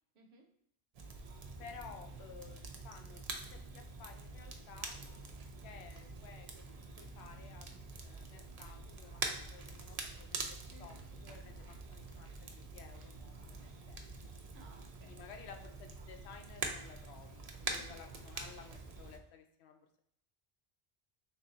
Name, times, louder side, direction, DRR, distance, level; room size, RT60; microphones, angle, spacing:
voice 1, 0.1-0.5 10.7-11.0 14.4-15.2 17.6-17.9, right 1 dB, 75° right, 3 dB, 1.0 m, -60 dB
Crackle, 0.9-19.2, right 3 dB, 50° right, 0.5 m, -45 dB
voice 2, 1.6-5.0 5.6-6.5 7.0-11.0 11.2-14.4 15.0-20.0, left 6 dB, 80° left, 5 dB, 0.8 m, -55 dB
3.4 x 2.6 x 3.8 m, 0.74 s
omnidirectional pair, 1.1 m